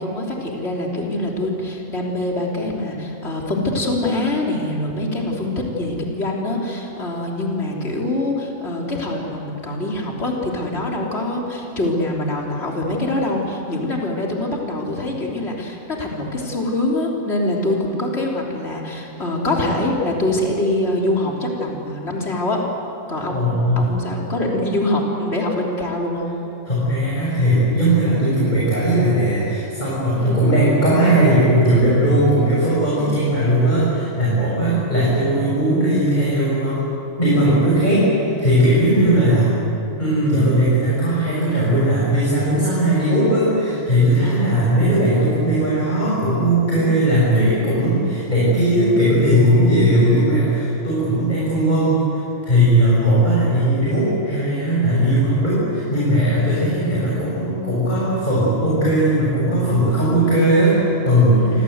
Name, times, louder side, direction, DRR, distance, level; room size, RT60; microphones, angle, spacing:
voice 1, 0.0-22.6 23.1-26.3 30.2-30.5 33.0-33.3 34.6-34.9 38.9-39.3 44.2-44.9 46.8-47.0 49.9-50.2 59.9-60.4 61.4-61.6, left 1 dB, 50° left, -2 dB, 3.8 m, -24 dB
voice 2, 23.3-23.9 26.6-36.8 37.2-39.5 40.0-61.6, right 1 dB, 30° left, -7 dB, 7.2 m, -18 dB
28.5 x 24.5 x 8.1 m, 2.9 s
omnidirectional pair, 1.5 m